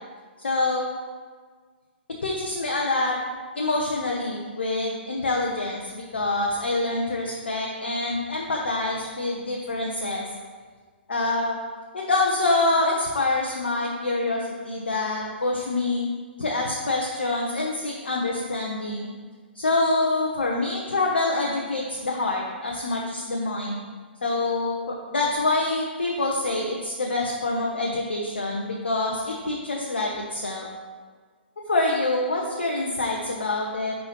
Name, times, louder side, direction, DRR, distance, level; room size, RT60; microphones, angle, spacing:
voice 1, 0.4-0.9 2.2-3.2 3.5-10.2 11.1-11.6 11.9-16.1 16.4-19.1 19.5-23.8 24.2-30.7 31.7-34.0, left 2 dB, 65° left, -1 dB, 1.0 m, -26 dB
10.5 x 4.2 x 3.1 m, 1.5 s
figure-of-eight pair, 120°, 6 cm